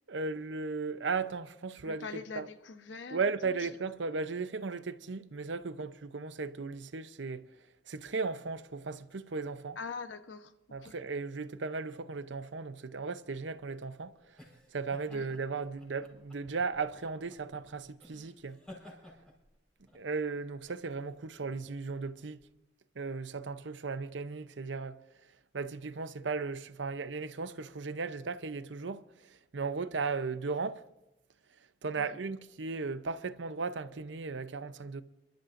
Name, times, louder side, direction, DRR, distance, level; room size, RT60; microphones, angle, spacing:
voice 1, 0.1-2.1 2.4-2.5 3.1-7.5 7.9-9.8 10.7-14.1 14.7-18.6 19.9-22.4 23.0-25.0 25.5-30.8 31.8-35.0, right 4 dB, 90° right, 0.7 m, -36 dB
voice 2, 1.8-3.7 9.8-10.9 15.1-15.3 32.0-32.2, left 4 dB, 90° left, 1.0 m, -44 dB
sound 1, 14.4-22.5, left 1 dB, 5° left, 4.7 m, -56 dB
28.5 x 13.0 x 2.6 m
head